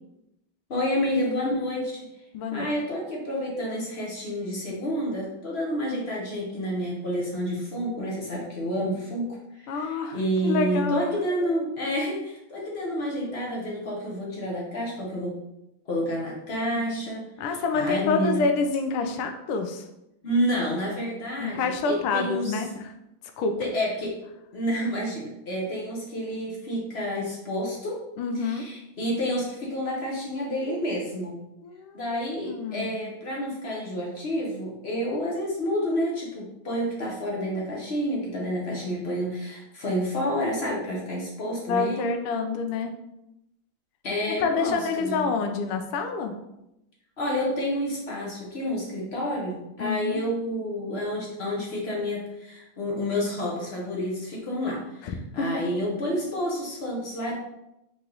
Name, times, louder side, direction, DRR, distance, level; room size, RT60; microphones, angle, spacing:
voice 1, 0.7-2.0 2.5-15.3 15.9-17.2 17.7-18.4 20.2-22.6 23.6-24.2 24.5-28.0 28.3-31.3 31.9-42.2 44.0-45.3 47.2-57.3, equal, 55° left, -3 dB, 0.7 m, -29 dB
voice 2, 2.3-2.7 9.7-10.2 10.4-11.0 17.4-19.9 21.4-22.9 23.4-23.6 28.2-28.7 31.6-32.0 32.5-33.0 41.7-42.9 44.3-46.3 49.8-50.2 55.0-55.6, left 4 dB, 85° left, 5 dB, 1.5 m, -27 dB
4.6 x 2.9 x 3.8 m, 0.87 s
omnidirectional pair, 2.4 m